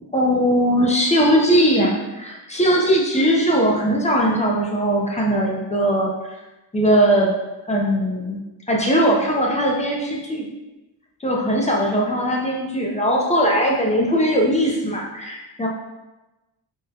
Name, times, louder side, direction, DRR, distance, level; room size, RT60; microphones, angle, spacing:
voice 1, 0.1-6.3 6.7-7.3 7.7-8.4 8.7-10.5 11.2-15.7, equal, 15° left, -2 dB, 0.3 m, -19 dB
3.5 x 2.1 x 2.7 m, 1.1 s
wide cardioid pair, 150°, 45 cm